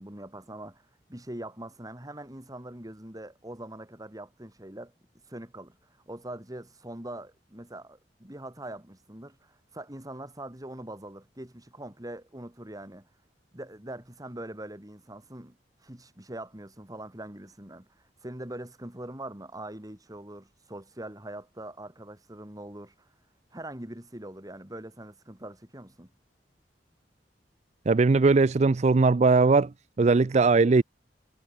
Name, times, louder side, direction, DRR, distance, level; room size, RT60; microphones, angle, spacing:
voice 1, 0.0-4.9 5.3-5.8 6.1-13.1 13.5-15.6 15.8-17.9 18.2-23.1 23.5-26.1, right 1 dB, 20° right, 2.7 m, -42 dB
voice 2, 27.9-29.7 30.0-30.8, right 3 dB, 40° right, 0.4 m, -20 dB
head